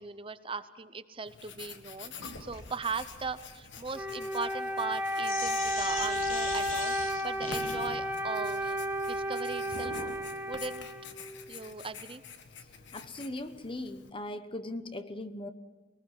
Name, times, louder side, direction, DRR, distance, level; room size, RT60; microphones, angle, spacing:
voice 1, 0.0-8.8 9.1-10.0 10.4-10.9 11.5-12.2, right 4 dB, 25° right, 0.7 m, -39 dB
Writing, 1.3-14.1, left 6 dB, 60° left, 1.7 m, -48 dB
Sink (filling or washing), 2.2-10.2, left 4 dB, 85° left, 3.0 m, -42 dB
Wind instrument woodwind instrument, 3.9-11.5, equal, 10° right, 2.3 m, -33 dB
voice 2, 12.9-15.5, left 1 dB, 25° left, 1.0 m, -39 dB
22.5 x 19.5 x 7.4 m
head